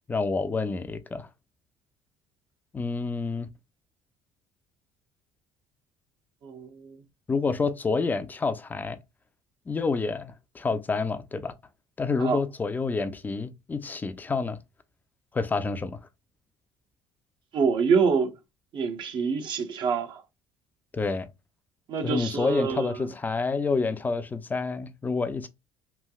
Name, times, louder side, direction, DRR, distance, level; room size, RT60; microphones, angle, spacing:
voice 1, 0.1-1.3 2.7-3.5 7.3-9.0 9.7-11.5 12.0-14.6 15.3-16.0 20.9-21.3 22.0-25.5, left 4 dB, 20° left, 0.4 m, -28 dB
voice 2, 6.4-6.9 12.2-12.4 17.5-18.3 18.7-20.2 21.9-22.9, right 5 dB, 55° right, 0.7 m, -26 dB
3.2 x 2.6 x 2.3 m
cardioid pair, 100°, 9 cm